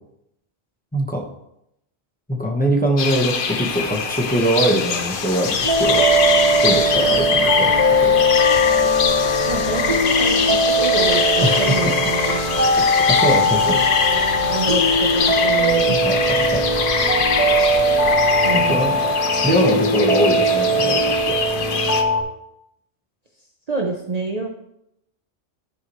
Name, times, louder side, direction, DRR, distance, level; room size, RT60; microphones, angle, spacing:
voice 1, 0.9-1.2 2.3-6.1 6.6-7.7 8.0-8.2 11.4-11.9 12.8-13.8 15.9-16.6 18.5-19.1 19.4-21.4, right 1 dB, 10° left, -1 dB, 1.2 m, -22 dB
sound 1, 3.0-22.0, left 5 dB, 55° left, 0.8 m, -23 dB
sound 2, 5.6-22.2, equal, 35° left, 2.1 m, -19 dB
voice 2, 9.5-12.4 13.6-13.7 14.1-16.1 18.4-19.0 23.7-24.5, right 3 dB, 40° right, 1 dB, 0.8 m, -27 dB
13.0 x 4.7 x 3.1 m, 0.80 s
omnidirectional pair, 1.1 m